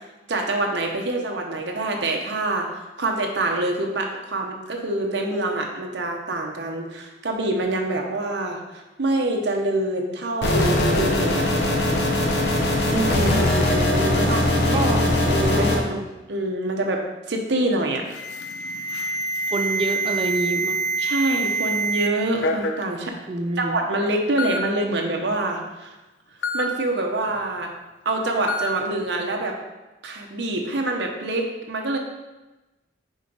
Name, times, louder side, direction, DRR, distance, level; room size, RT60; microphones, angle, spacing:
voice 1, 0.3-11.4 13.7-14.9 15.3-15.9 16.3-18.1 21.0-23.1 23.6-25.9 26.5-27.7 28.0-29.6 30.0-32.0, right 2 dB, 75° right, 2 dB, 0.9 m, -26 dB
sound 1, 10.4-15.8, left 1 dB, 65° left, 1.0 m, -20 dB
voice 2, 12.9-13.5 14.7-15.1 15.5-16.1 19.5-20.8 23.3-23.8, right 2 dB, 30° right, 6 dB, 0.4 m, -26 dB
Alarm, 18.1-22.1 22.4-22.8 23.7-23.8 24.4-24.6 26.4-26.6 28.5-28.7, right 2 dB, 85° left, 0.5 m, -26 dB
5.1 x 4.8 x 3.9 m, 1.1 s
head